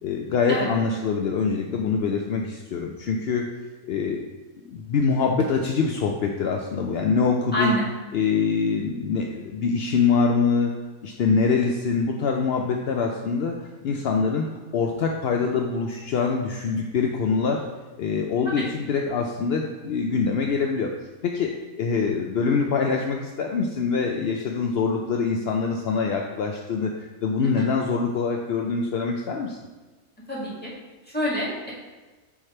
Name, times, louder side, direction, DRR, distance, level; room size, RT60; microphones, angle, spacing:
voice 1, 0.0-3.5 3.9-4.2 4.7-7.7 8.1-10.7 11.0-13.5 13.8-14.4 14.7-17.6 18.0-20.9 21.2-29.6, left 5 dB, 70° left, 1 dB, 0.6 m, -24 dB
voice 2, 7.5-7.9 18.5-18.6 27.4-27.6 30.3-30.7 31.1-31.7, equal, 5° left, -6 dB, 1.7 m, -27 dB
8.4 x 3.3 x 4.3 m, 1.2 s
omnidirectional pair, 1.6 m